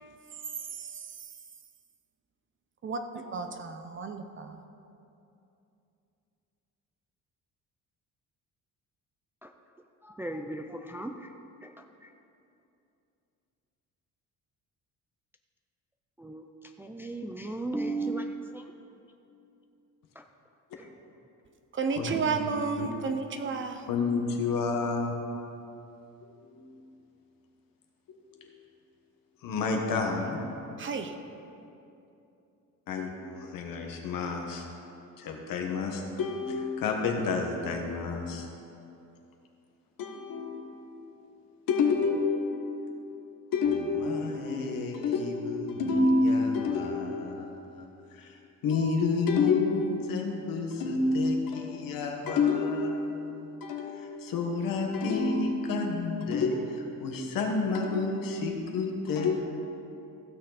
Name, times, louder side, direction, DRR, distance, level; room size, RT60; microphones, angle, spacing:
voice 1, 0.7-1.3 2.8-4.6 21.7-23.9 30.8-31.1, right 5 dB, 35° right, 7 dB, 0.7 m, -32 dB
voice 2, 10.0-12.1 16.2-18.7 20.2-20.3 20.8-20.9, right 2 dB, 5° right, 4 dB, 0.3 m, -37 dB
voice 3, 22.0-22.5 22.8-22.9 23.9-25.1 26.2-26.6 28.1-28.4 29.4-30.4 32.9-34.6 35.2-38.4 40.0-40.9 41.7-42.9 43.5-47.9 48.1-48.3 48.6-59.4, left 4 dB, 75° left, 2 dB, 1.5 m, -29 dB
15.5 x 6.6 x 4.1 m, 2.8 s
cardioid pair, 130°, 34 cm